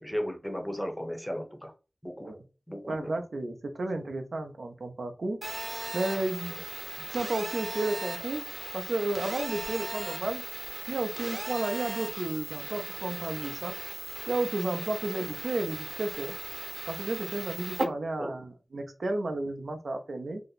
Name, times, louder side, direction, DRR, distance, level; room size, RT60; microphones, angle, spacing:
voice 1, 0.0-1.7 2.0-2.3 2.7-3.1 6.5-6.6 15.0-15.3 18.2-18.3, equal, 5° left, 0.6 m, -35 dB
voice 2, 2.9-5.4 5.9-6.6 7.1-8.4 8.7-10.4 10.9-13.7 14.3-16.3 16.9-20.4, right 2 dB, 75° right, 0.5 m, -32 dB
Telephone, 5.4-17.8, right 2 dB, 50° right, 0.9 m, -37 dB
2.7 x 2.1 x 3.9 m
wide cardioid pair, 85°, 0 cm